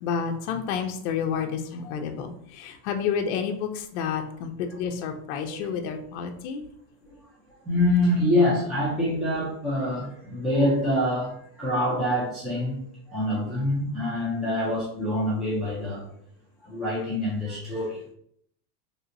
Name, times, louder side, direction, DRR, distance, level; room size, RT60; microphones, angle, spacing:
voice 1, 0.0-6.6, left 7 dB, 55° left, 4 dB, 0.5 m, -30 dB
voice 2, 7.6-16.1 16.6-18.0, left 1 dB, ahead, -8 dB, 0.3 m, -25 dB
3.3 x 2.8 x 2.6 m, 0.66 s
supercardioid pair, 155°, 43 cm